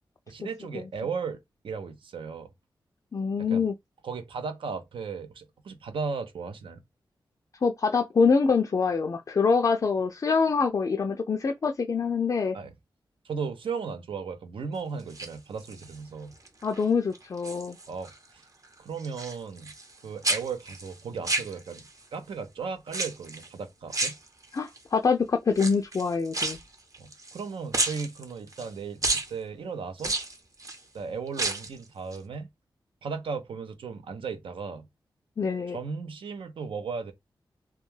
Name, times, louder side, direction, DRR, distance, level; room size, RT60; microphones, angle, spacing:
voice 1, 0.3-2.5 3.4-3.6 4.0-6.8 12.5-12.7 13.2-16.3 17.9-18.4 18.8-19.7 20.0-21.8 22.1-24.1 27.0-30.1 30.9-32.5 33.0-34.9 35.7-37.1, right 5 dB, 80° right, 0.5 m, -36 dB
voice 2, 3.1-3.7 7.6-12.6 16.6-17.8 24.5-26.6 35.4-35.8, left 5 dB, 40° left, 0.3 m, -25 dB
sound 1, 15.0-16.0 16.4-16.8 17.1-18.2 18.4-20.0 20.2-22.0 22.9-23.5 23.9-24.8 25.5-27.4 27.7-28.7 29.0-29.3 30.0-30.8 31.3-31.8 32.1-32.2, right 2 dB, 40° right, 0.7 m, -31 dB
2.2 x 2.2 x 3.1 m
cardioid pair, 60°, 9 cm